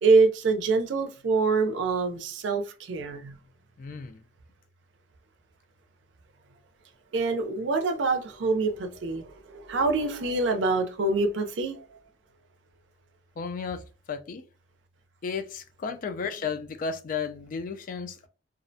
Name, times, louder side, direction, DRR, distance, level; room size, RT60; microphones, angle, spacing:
voice 1, 0.0-3.4 7.1-12.0, right 3 dB, 85° right, 0.5 m, -25 dB
voice 2, 3.8-4.2 13.4-14.4 15.2-18.3, left 5 dB, 50° left, 0.3 m, -34 dB
2.4 x 2.1 x 2.6 m
head